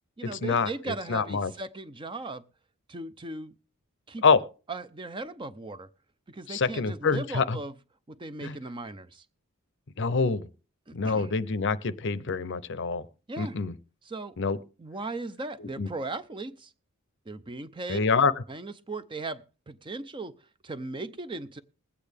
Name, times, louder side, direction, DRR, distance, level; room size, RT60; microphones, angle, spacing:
voice 1, 0.2-2.4 2.9-3.5 4.1-4.2 4.7-5.9 6.3-7.7 8.1-9.2 10.9-11.3 13.3-13.6 14.0-14.4 14.8-16.7 17.3-18.0 18.5-20.3 20.6-21.6, right 3 dB, 25° right, 0.5 m, -37 dB
voice 2, 1.1-1.5 4.2-4.4 6.5-7.6 8.4-8.5 10.0-10.5 10.9-13.0 13.4-13.7 14.4-14.6 15.8-15.9 17.9-18.3, left 4 dB, 60° left, 0.6 m, -25 dB
21.0 x 8.4 x 3.4 m
head